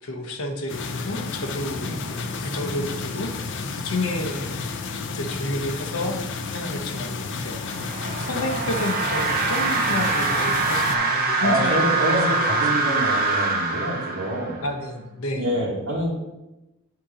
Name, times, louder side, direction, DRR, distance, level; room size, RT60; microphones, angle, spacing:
voice 1, 0.0-4.6 5.1-7.9 8.2-12.8 14.6-15.5, left 1 dB, 75° left, 4 dB, 0.9 m, -31 dB
sound 1, 0.7-11.0, left 4 dB, 55° left, 0.5 m, -31 dB
sound 2, 7.6-14.7, right 3 dB, 45° right, 0.8 m, -24 dB
voice 2, 11.4-14.6 15.3-16.1, right 1 dB, 85° right, -6 dB, 1.4 m, -26 dB
7.4 x 2.9 x 5.1 m, 0.98 s
head